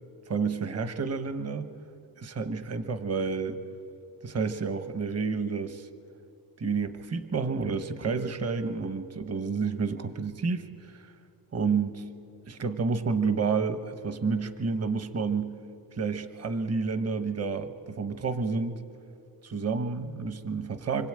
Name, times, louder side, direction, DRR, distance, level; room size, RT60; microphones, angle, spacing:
voice 1, 0.3-1.7 2.2-3.6 4.2-5.9 6.6-11.1 11.5-12.0 12.5-15.5 15.9-18.8 19.4-21.1, right 5 dB, 40° right, 10 dB, 1.2 m, -30 dB
25.5 x 25.0 x 8.9 m, 2.4 s
wide cardioid pair, 160°, 39 cm